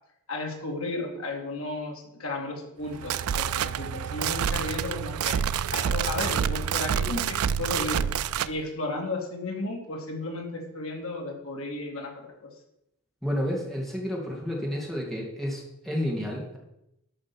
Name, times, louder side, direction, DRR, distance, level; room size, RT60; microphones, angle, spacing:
voice 1, 0.3-5.4 5.7-8.1 8.4-12.5, left 2 dB, 70° left, 1 dB, 2.5 m, -34 dB
sound 1, 2.9-8.5, right 8 dB, 80° right, 0.4 m, -28 dB
voice 2, 13.2-16.6, equal, ahead, -3 dB, 2.5 m, -30 dB
13.0 x 6.0 x 6.2 m, 0.84 s
head